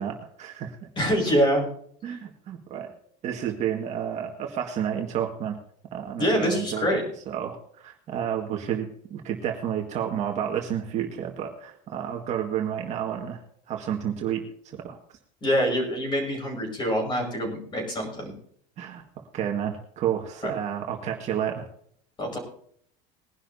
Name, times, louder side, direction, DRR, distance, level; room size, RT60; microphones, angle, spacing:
voice 1, 0.0-0.9 2.0-2.9 3.2-5.6 5.9-13.4 13.7-15.0 18.8-21.7, right 9 dB, 40° right, 1 dB, 1.8 m, -31 dB
voice 2, 1.0-1.6 2.0-2.2 6.2-7.0 15.4-18.3 20.4-20.5 22.2-22.4, equal, 25° left, 2 dB, 5.5 m, -25 dB
21.0 x 11.5 x 2.8 m, 0.63 s
cardioid pair, 165°, 19 cm